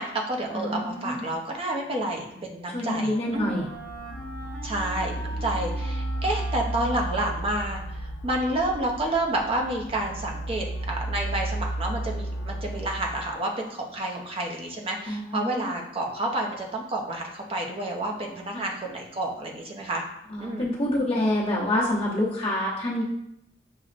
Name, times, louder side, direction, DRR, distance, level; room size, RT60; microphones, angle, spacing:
voice 1, 0.0-3.5 4.6-20.0 20.4-20.7, right 1 dB, 35° right, 0 dB, 0.6 m, -30 dB
voice 2, 0.5-1.3 2.7-3.6 15.1-15.7 18.5-18.6 20.3-23.0, left 1 dB, 35° left, -7 dB, 0.9 m, -27 dB
Wind instrument woodwind instrument, 2.3-8.1, equal, 10° left, 1.0 m, -43 dB
sound 1, 3.3-13.3, right 1 dB, 90° left, 0.4 m, -33 dB
6.2 x 2.1 x 2.5 m, 0.81 s
head